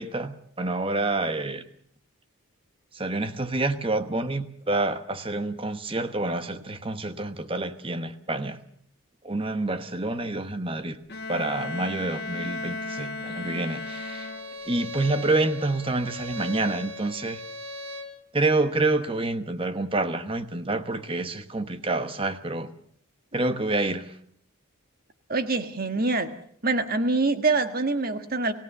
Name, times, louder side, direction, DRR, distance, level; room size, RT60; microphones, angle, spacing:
voice 1, 0.0-1.6 2.9-8.6 9.2-11.0 11.3-14.3 14.7-17.4 18.3-22.7 23.3-24.2, right 2 dB, 25° right, 1.1 m, -28 dB
Bowed string instrument, 11.1-14.9, left 3 dB, 45° left, 1.4 m, -35 dB
Bowed string instrument 2, 13.6-18.2, left 1 dB, 60° right, 3.6 m, -39 dB
voice 2, 25.3-26.3 26.6-28.5, right 3 dB, 40° right, 1.5 m, -25 dB
28.5 x 16.5 x 6.7 m
head